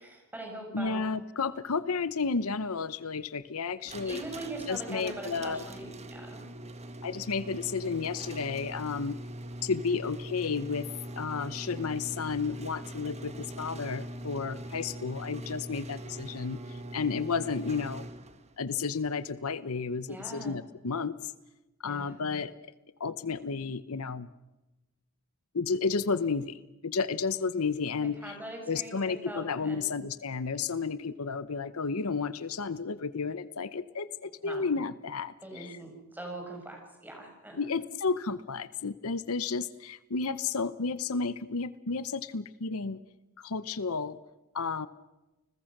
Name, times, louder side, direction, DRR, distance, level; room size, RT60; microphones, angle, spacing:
voice 1, 0.0-1.0 4.1-6.4 20.1-20.5 21.8-22.1 28.0-29.9 34.4-34.6 35.4-37.7, right 1 dB, 10° right, 1 dB, 7.0 m, -42 dB
voice 2, 0.7-4.2 4.7-5.6 7.0-9.2 9.6-10.9 11.2-18.1 18.6-21.3 21.8-22.5 23.0-24.3 25.5-28.3 28.7-35.8 37.6-43.0 43.4-44.2 44.5-44.9, left 5 dB, 70° left, 15 dB, 0.8 m, -32 dB
sound 1, 3.8-18.5, right 1 dB, 30° right, 1.8 m, -42 dB
30.0 x 20.5 x 6.6 m, 1.0 s
head